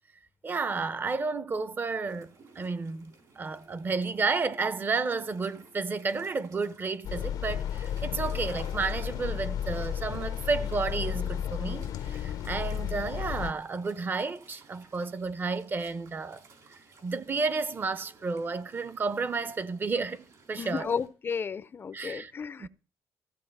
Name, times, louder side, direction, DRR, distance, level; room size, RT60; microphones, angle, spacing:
voice 1, 0.4-16.4 17.0-20.9 21.9-22.3 22.6-22.7, right 4 dB, 30° right, 0.7 m, -32 dB
sound 1, 2.0-21.1, right 4 dB, 60° right, 3.7 m, -57 dB
sound 2, 7.0-13.5, left 9 dB, 80° left, 0.6 m, -33 dB
voice 2, 20.6-22.7, left 6 dB, 35° left, 0.5 m, -33 dB
15.0 x 7.4 x 5.3 m
cardioid pair, 120°, 7 cm